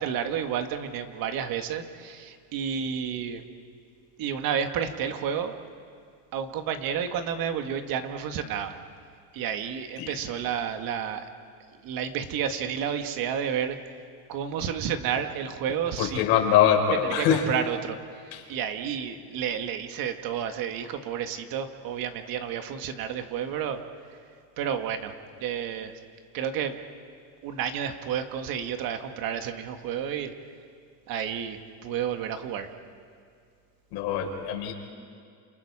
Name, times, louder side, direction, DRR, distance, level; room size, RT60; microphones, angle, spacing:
voice 1, 0.0-3.4 4.2-5.5 6.3-8.8 9.3-11.3 11.8-13.9 14.3-16.3 16.9-18.0 18.2-23.8 24.6-25.9 26.3-26.8 27.4-30.3 31.1-32.7, right 8 dB, 50° right, 7 dB, 1.9 m, -31 dB
voice 2, 16.0-17.4 18.3-18.4 33.9-34.7, left 9 dB, 65° left, 2 dB, 5.1 m, -23 dB
29.0 x 28.0 x 4.9 m, 2.3 s
cardioid pair, 140°, 43 cm